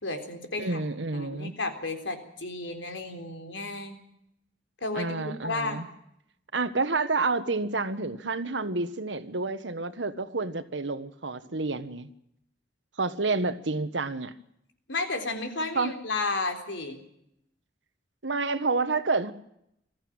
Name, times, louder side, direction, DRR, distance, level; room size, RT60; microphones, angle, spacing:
voice 1, 0.0-0.8 1.1-4.0 4.8-5.8 14.9-17.0, left 3 dB, 85° left, 6 dB, 3.9 m, -33 dB
voice 2, 0.6-1.5 4.9-5.8 6.5-12.1 13.0-14.3 15.7-15.9 18.2-19.3, right 3 dB, 80° right, 12 dB, 1.5 m, -29 dB
21.0 x 14.5 x 8.8 m, 0.78 s
head